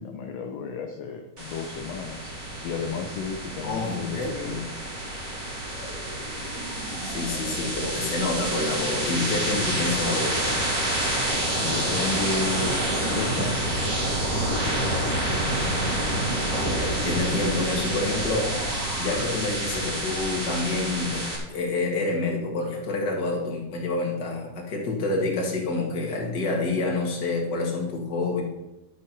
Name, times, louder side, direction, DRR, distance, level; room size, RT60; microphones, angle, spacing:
voice 1, 0.0-2.3 2.6-4.7 11.6-12.8 13.1-14.0 14.3-15.2, left 5 dB, 70° left, 4 dB, 1.6 m, -33 dB
sound 1, 1.4-21.4, right 1 dB, 30° right, 2.4 m, -28 dB
voice 2, 3.6-4.6 7.0-10.6 16.7-18.5 19.0-21.2 21.5-28.4, left 3 dB, 35° left, -1 dB, 2.2 m, -28 dB
11.5 x 6.2 x 6.0 m, 0.97 s
omnidirectional pair, 3.6 m